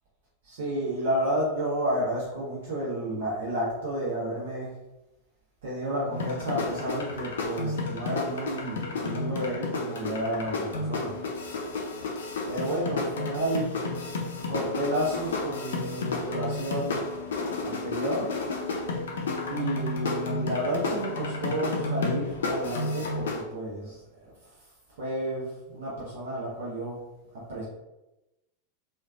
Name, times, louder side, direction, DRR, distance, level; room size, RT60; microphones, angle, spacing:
voice 1, 0.4-4.7 5.6-11.2 12.5-13.7 14.5-17.0 17.6-18.3 19.5-24.0 25.0-27.0 27.5-27.6, right 1 dB, 55° right, -6 dB, 0.7 m, -31 dB
sound 1, 6.1-23.4, left 3 dB, 65° left, 0.4 m, -31 dB
3.1 x 2.2 x 2.4 m, 0.97 s
figure-of-eight pair, 90°, 0 cm